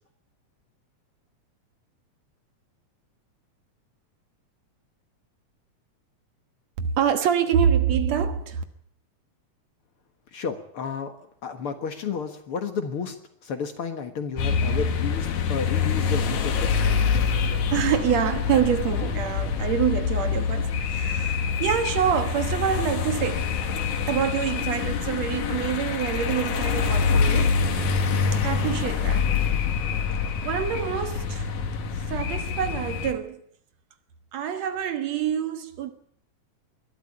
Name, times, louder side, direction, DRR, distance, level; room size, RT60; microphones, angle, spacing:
voice 1, 6.8-8.6 17.7-23.5 24.1-27.6 28.4-29.3 30.4-31.5 32.1-33.4 34.3-35.9, right 8 dB, 65° right, 2.5 m, -26 dB
voice 2, 10.3-11.1 11.4-13.2 13.4-16.8, left 6 dB, 50° left, 2.2 m, -31 dB
sound 1, 14.4-33.1, left 6 dB, 80° left, 3.2 m, -25 dB
21.0 x 13.0 x 9.9 m
omnidirectional pair, 3.4 m